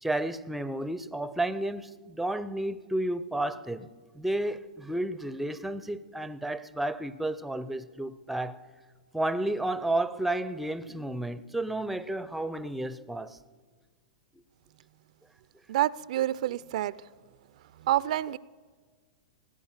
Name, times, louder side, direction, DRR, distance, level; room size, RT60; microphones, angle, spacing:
voice 1, 0.0-3.9 4.2-8.6 9.1-13.4, right 1 dB, ahead, 0.5 m, -32 dB
voice 2, 15.7-17.0 17.8-18.4, right 13 dB, 60° right, 0.4 m, -28 dB
17.0 x 9.9 x 7.3 m
hypercardioid pair, 130°, 4 cm